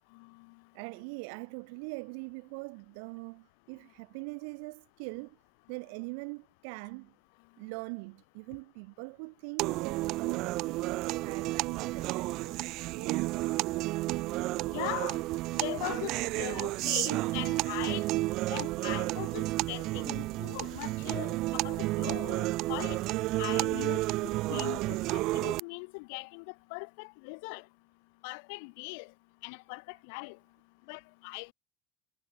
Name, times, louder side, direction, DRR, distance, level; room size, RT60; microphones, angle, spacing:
voice 1, 0.7-5.4 5.7-7.1 7.6-13.9, right 34 dB, 75° right, 3.9 m, -42 dB
sound 1, 9.6-25.6, right 19 dB, 55° right, 1.3 m, -31 dB
voice 2, 14.7-15.2 15.5-18.1 18.4-23.0 23.4-24.0 24.5-24.8 25.1-27.6 28.2-29.1 29.4-30.4 30.9-31.5, left 34 dB, 75° left, 7.3 m, -40 dB
cardioid pair, 140°, 0 cm